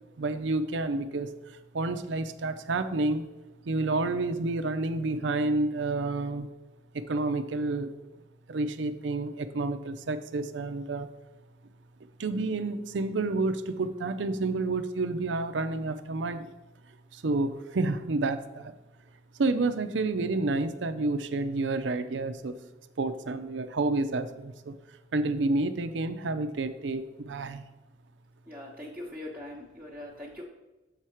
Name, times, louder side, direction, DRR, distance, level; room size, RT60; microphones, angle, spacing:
voice 1, 0.2-1.3 1.7-3.2 3.7-6.5 6.9-7.9 8.5-11.1 12.2-16.5 17.1-18.7 19.4-22.6 23.0-24.7 25.1-27.6, right 3 dB, 75° right, 10 dB, 0.5 m, -29 dB
voice 2, 28.5-30.4, left 1 dB, 10° right, -7 dB, 0.9 m, -41 dB
7.3 x 4.8 x 4.4 m, 1.0 s
head